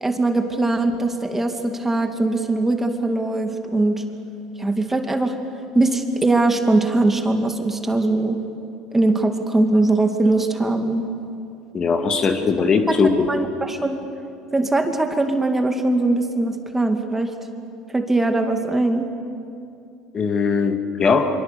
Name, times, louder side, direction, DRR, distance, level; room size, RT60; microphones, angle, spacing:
voice 1, 0.0-4.0 4.6-5.3 5.7-8.4 8.9-11.1 12.9-13.0 13.3-14.1 14.5-17.3 17.9-19.0, right 2 dB, 15° right, 5 dB, 2.3 m, -21 dB
voice 2, 11.7-13.3 20.1-21.3, left 5 dB, 35° left, 6 dB, 2.0 m, -19 dB
24.5 x 24.5 x 6.9 m, 2.6 s
hypercardioid pair, 80°, 2 cm